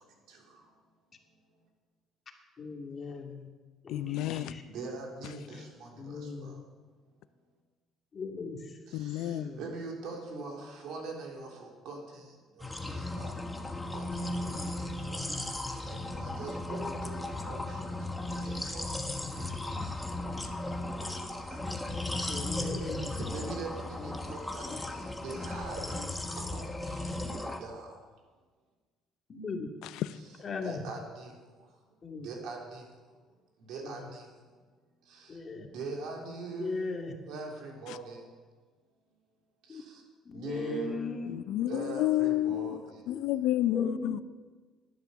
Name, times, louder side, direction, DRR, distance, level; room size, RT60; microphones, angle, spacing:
voice 1, 2.6-3.5 3.8-4.6 5.5-5.6 6.0-6.6 8.1-8.8 9.3-9.6 14.5-14.7 22.3-23.0 24.0-24.2 24.7-24.8 29.3-29.7 30.4-30.8 32.0-32.3 33.8-34.1 35.3-35.7 36.6-37.2 39.7-39.8 40.2-41.5 43.1-43.2 43.7-44.2, left 3 dB, 40° left, 2.2 m, -38 dB
voice 2, 3.9-4.5 8.9-9.5 29.8-30.2 37.9-38.0 41.3-44.2, left 14 dB, 75° left, 0.5 m, -30 dB
voice 3, 4.7-6.5 8.9-12.2 12.6-13.3 13.9-14.3 14.8-15.6 15.9-17.8 18.3-18.9 19.4-19.5 21.0-21.2 21.5-21.6 23.0-24.7 24.9-26.0 26.4-28.0 30.6-31.3 32.2-32.8 33.7-34.2 35.1-38.2 40.3-41.1 41.7-42.8, right 3 dB, 75° right, 3.5 m, -42 dB
sound 1, 12.6-27.6, left 2 dB, 10° left, 1.4 m, -36 dB
11.0 x 11.0 x 7.1 m
supercardioid pair, 90°, 0 cm